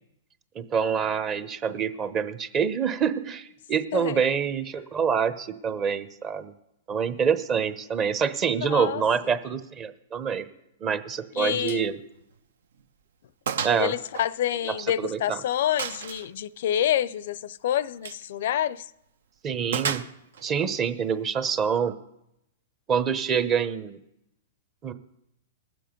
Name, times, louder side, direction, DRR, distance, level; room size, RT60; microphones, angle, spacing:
voice 1, 0.5-6.5 6.9-10.5 10.8-12.0 13.6-13.9 14.7-15.4 19.4-20.1 20.4-21.9 22.9-24.0 24.8-24.9, right 7 dB, 25° right, 0.9 m, -26 dB
voice 2, 8.6-9.0 11.3-11.8 13.8-18.9, left 11 dB, 65° left, 0.5 m, -27 dB
Gunshot gunfire, 11.7-11.9 12.2-12.3 12.8-12.9 13.5-13.8 14.1-15.1 15.8-16.3 17.9-18.2 19.7-20.5, right 7 dB, 80° right, 0.8 m, -32 dB
20.0 x 7.7 x 5.2 m
hypercardioid pair, 135°, 0 cm